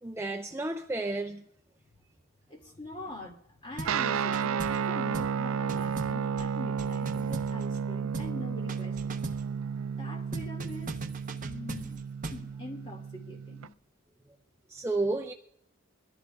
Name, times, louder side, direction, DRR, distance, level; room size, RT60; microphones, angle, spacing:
voice 1, 0.0-1.4 14.7-15.3, right 2 dB, 10° right, 0.4 m, -31 dB
voice 2, 2.5-9.3 9.9-11.0 11.4-12.0 12.3-13.7, left 2 dB, 25° left, 2.1 m, -44 dB
sound 1, 3.8-4.0 4.3-4.9 5.1-5.4 5.7-7.8 8.1-8.4 8.7-9.5 10.3-12.5, right 2 dB, 40° right, 0.8 m, -40 dB
Guitar, 3.8-13.7, right 6 dB, 75° right, 0.4 m, -32 dB
23.0 x 14.5 x 2.3 m
head